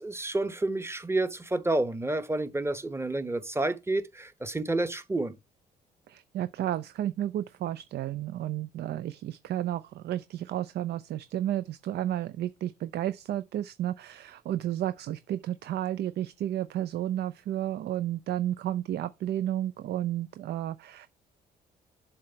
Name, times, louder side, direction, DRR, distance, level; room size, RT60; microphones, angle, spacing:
voice 1, 0.0-5.4, right 2 dB, 10° right, 0.9 m, -29 dB
voice 2, 6.1-21.1, right 12 dB, 55° right, 0.4 m, -32 dB
7.4 x 3.3 x 4.5 m
hypercardioid pair, 45°, 20 cm